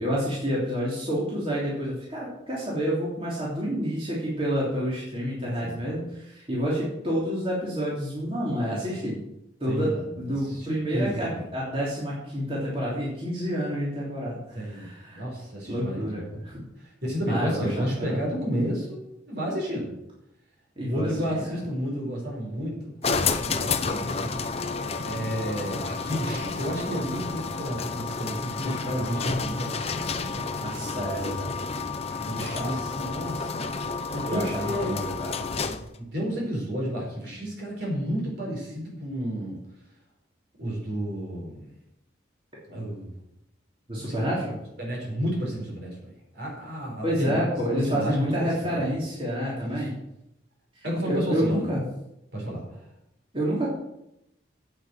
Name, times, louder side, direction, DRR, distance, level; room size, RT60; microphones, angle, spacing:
voice 1, 0.0-9.2 9.6-15.2 15.7-16.7 17.3-18.2 20.8-21.1 21.4-21.5 30.6-31.6 32.2-32.7 33.0-33.1 34.2-35.4 43.9-44.5 47.0-49.9 50.7-51.8 53.3-53.7, equal, 30° right, -6 dB, 3.1 m, -29 dB
voice 2, 5.6-6.0 9.7-11.4 14.6-16.4 16.8-19.9 20.9-23.0 23.2-24.3 25.0-30.9 32.1-33.6 34.1-35.0 35.6-39.6 40.6-41.7 42.7-43.1 44.0-44.3 44.8-48.8 49.6-49.9 50.8-51.6 52.3-52.9, equal, 60° right, -2 dB, 5.2 m, -32 dB
sound 1, 23.0-36.0, left 4 dB, 35° left, 0.7 m, -30 dB
8.9 x 8.2 x 7.7 m, 0.84 s
head